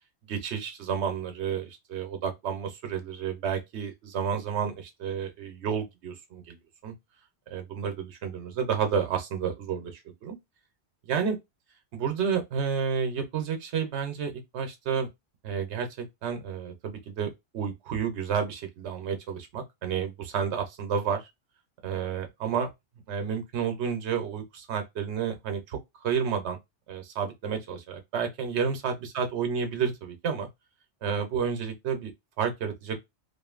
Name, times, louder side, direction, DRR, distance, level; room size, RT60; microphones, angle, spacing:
voice 1, 0.3-6.6 6.8-6.9 7.5-10.4 11.0-11.4 11.9-15.1 15.4-21.3 21.8-22.7 23.1-26.6 26.9-30.5 31.0-32.1 32.4-33.0, right 7 dB, 75° right, 1.0 m, -31 dB
2.6 x 2.4 x 2.3 m
omnidirectional pair, 1.2 m